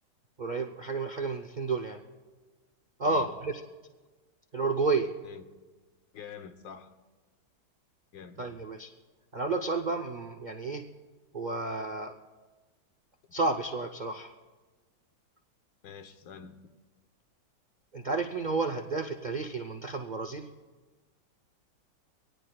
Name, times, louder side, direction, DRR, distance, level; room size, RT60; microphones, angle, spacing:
voice 1, 0.4-2.0 3.0-3.5 4.5-5.1 8.4-8.9 9.3-10.8 11.3-12.1 13.3-14.3 17.9-20.5, right 3 dB, 60° right, 3 dB, 0.4 m, -31 dB
voice 2, 6.1-6.9 8.1-8.5 15.8-16.7, left 7 dB, 85° left, 7 dB, 1.7 m, -46 dB
24.5 x 18.0 x 2.3 m, 1.3 s
omnidirectional pair, 1.9 m